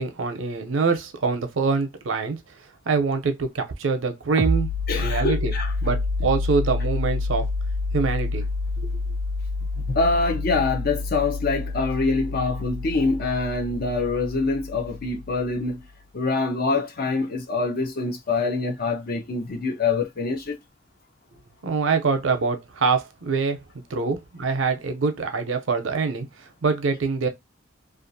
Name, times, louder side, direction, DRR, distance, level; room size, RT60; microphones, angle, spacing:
voice 1, 0.0-2.4 2.9-4.7 5.0-5.5 5.8-7.5 7.9-8.4 8.8-8.9 21.6-23.6 23.9-27.3, right 4 dB, 85° right, 0.6 m, -24 dB
sound 1, 4.4-15.7, left 2 dB, 30° right, 0.3 m, -28 dB
voice 2, 4.9-5.7 9.9-15.8 16.1-20.6, left 3 dB, 50° left, 0.6 m, -25 dB
2.5 x 2.4 x 2.6 m
head